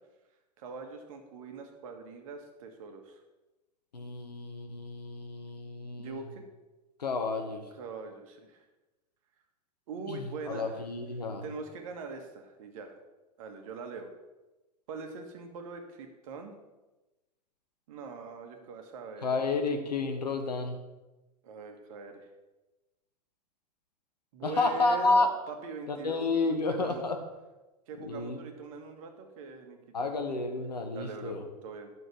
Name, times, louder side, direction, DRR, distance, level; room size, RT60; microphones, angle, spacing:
voice 1, 0.6-3.2 6.0-6.4 7.7-8.7 9.9-10.8 11.4-13.0 13.4-14.1 14.9-16.5 17.9-19.4 21.4-22.3 24.3-26.2 26.5-27.0 27.9-29.8 30.9-31.9, right 4 dB, 55° right, 5 dB, 1.8 m, -42 dB
voice 2, 3.9-6.2 7.0-7.7 10.1-11.4 19.2-20.8 24.4-25.3 25.9-27.2 28.0-28.4 29.9-31.5, left 3 dB, 75° left, 5 dB, 1.5 m, -30 dB
11.0 x 6.5 x 6.1 m, 1.1 s
figure-of-eight pair, 90°, 21 cm